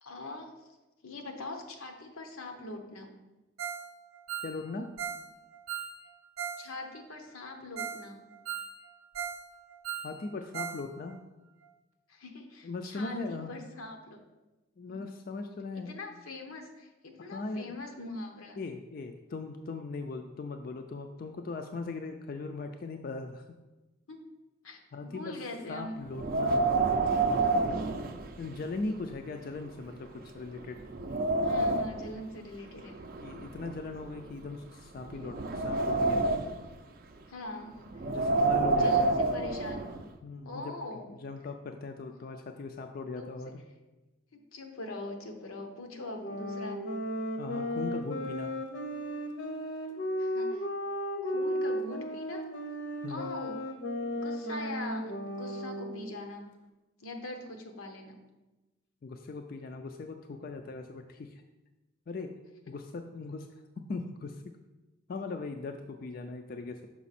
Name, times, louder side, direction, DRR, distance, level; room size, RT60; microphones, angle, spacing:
voice 1, 0.0-0.5 1.0-3.1 6.6-8.2 12.1-14.2 14.9-15.0 15.9-18.6 24.1-24.2 24.6-25.9 27.6-27.9 31.4-33.0 37.3-37.8 38.7-39.9 40.4-41.0 43.2-43.4 44.3-46.9 50.2-50.7 51.2-52.5 53.1-53.6 54.1-56.5 57.0-58.2, left 2 dB, 90° left, 4 dB, 1.0 m, -42 dB
Ringtone, 3.6-3.9 4.1-6.6 6.9-7.0 7.5-7.6 7.8-8.0 8.3-9.4 9.7-10.8 11.1-11.2 11.6-11.7, right 8 dB, 85° right, 0.6 m, -38 dB
voice 2, 4.4-4.9 10.0-11.2 12.6-13.5 14.8-16.0 17.3-17.7 18.6-23.5 24.9-26.7 28.4-30.8 33.2-36.3 38.1-39.2 40.2-40.7 41.1-43.6 47.4-48.5 53.0-53.3 59.0-61.4 62.1-62.3 62.7-63.5 63.9-64.6 65.1-66.9, left 3 dB, 45° left, 5 dB, 0.3 m, -39 dB
Wind, 26.1-28.8 29.1-29.2 29.9-30.0 30.5-32.1 32.9-34.5 35.0-36.7 37.9-40.0, right 3 dB, 45° right, 0.4 m, -28 dB
sound 1, 46.2-56.2, equal, 60° left, 0.8 m, -35 dB
6.0 x 5.1 x 4.2 m, 1.1 s
head